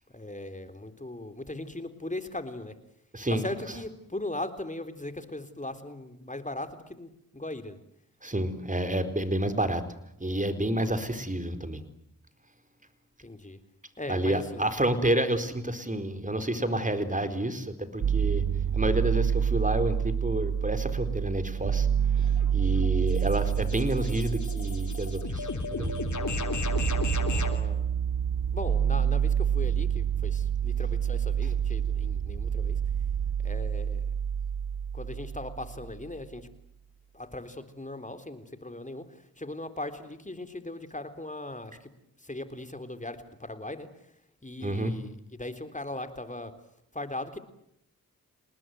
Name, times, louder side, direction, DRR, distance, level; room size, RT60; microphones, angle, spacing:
voice 1, 0.1-2.7 3.3-7.8 13.2-13.6 14.0-14.7 27.2-27.9 28.5-32.8 33.4-34.0 34.9-36.5 37.1-41.9 42.2-43.9 44.4-46.5 46.9-47.4, left 2 dB, 20° left, 10 dB, 3.7 m, -39 dB
voice 2, 3.1-3.4 8.2-9.8 10.2-11.8 14.1-18.4 18.7-21.9 22.1-22.3 22.5-25.9 44.6-45.0, right 1 dB, 20° right, 10 dB, 4.4 m, -29 dB
sound 1, 18.0-36.0, right 8 dB, 65° right, 1.0 m, -28 dB
sound 2, 22.2-27.6, left 4 dB, 55° left, 3.3 m, -35 dB
28.0 x 19.5 x 9.3 m, 0.75 s
cardioid pair, 45°, 36 cm